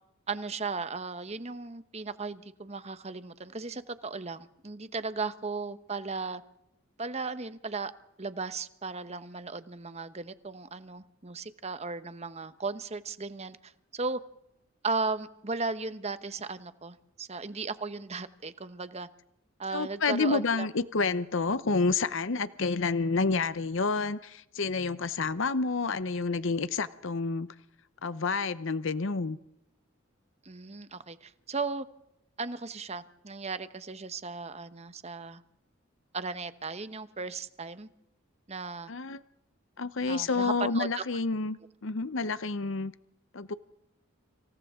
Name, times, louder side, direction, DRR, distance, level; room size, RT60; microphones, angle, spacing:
voice 1, 0.3-6.4 7.0-7.9 8.2-14.2 14.8-19.1 19.6-20.7 30.4-31.9 32.4-35.4 36.1-37.9 38.5-38.9 40.1-41.0, right 4 dB, 30° right, 1.0 m, -36 dB
voice 2, 19.7-27.5 28.0-29.4 38.9-39.2 39.8-42.9 43.3-43.5, left 4 dB, 60° left, 0.8 m, -29 dB
29.5 x 26.5 x 3.7 m
head